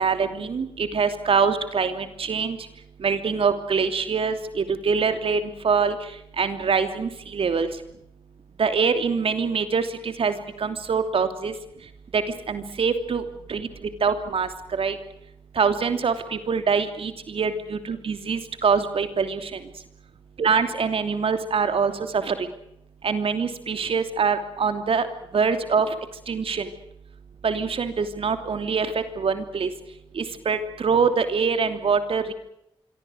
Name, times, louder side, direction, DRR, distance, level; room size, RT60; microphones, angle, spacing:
voice 1, 0.0-2.6 3.0-6.0 6.4-7.7 8.6-11.5 12.1-12.2 12.5-13.2 13.5-13.7 14.0-15.0 15.6-19.6 20.4-22.5 23.0-25.1 25.3-25.9 26.3-26.7 27.4-29.7 30.1-32.3, right 5 dB, 70° right, 9 dB, 3.0 m, -24 dB
26.0 x 24.0 x 6.5 m, 0.77 s
cardioid pair, 60°, 10 cm